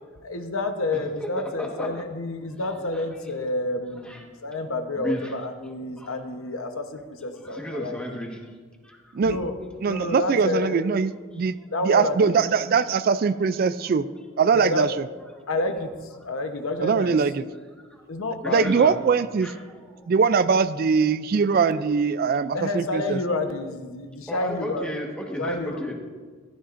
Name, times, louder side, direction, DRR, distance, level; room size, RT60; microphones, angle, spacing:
voice 1, 0.2-8.0 9.2-9.5 9.9-10.8 11.7-12.2 14.5-14.9 15.5-17.2 18.1-18.6 22.5-24.9 25.4-25.8, left 2 dB, 90° left, 6 dB, 1.0 m, -29 dB
voice 2, 1.2-1.9 2.9-3.0 4.0-4.2 5.0-5.3 6.0-6.1 7.3-8.5 8.8-9.2 10.1-10.2 11.3-11.7 16.2-16.3 17.8-18.0 18.4-19.0 19.4-20.1 24.3-25.9, equal, 5° left, 0 dB, 1.4 m, -34 dB
voice 3, 9.8-11.5 11.8-14.1 14.4-15.0 16.8-17.4 18.5-19.5 20.1-23.2, right 5 dB, 45° right, 14 dB, 0.3 m, -22 dB
15.0 x 12.5 x 2.6 m, 1.5 s
head